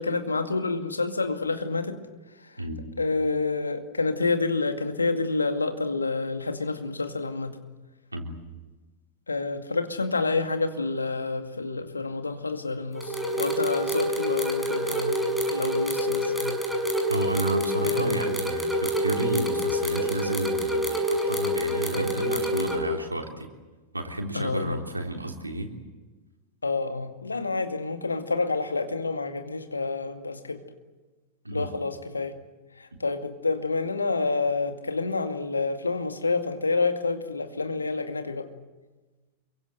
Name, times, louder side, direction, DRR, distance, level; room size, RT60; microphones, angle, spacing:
voice 1, 0.0-2.0 2.4-2.6 3.0-7.6 9.3-16.6 17.8-18.2 21.9-22.1 24.3-24.8 26.6-30.6 31.5-32.4 32.8-38.5, left 3 dB, 80° left, 7 dB, 2.2 m, -28 dB
voice 2, 2.6-2.9 8.1-8.3 17.1-23.5 23.9-25.7 31.4-31.7, right 1 dB, 80° right, 2 dB, 3.5 m, -32 dB
sound 1, 12.9-22.8, equal, ahead, 6.6 m, -27 dB
27.5 x 23.5 x 7.9 m, 1.2 s
figure-of-eight pair, 90°, 0 cm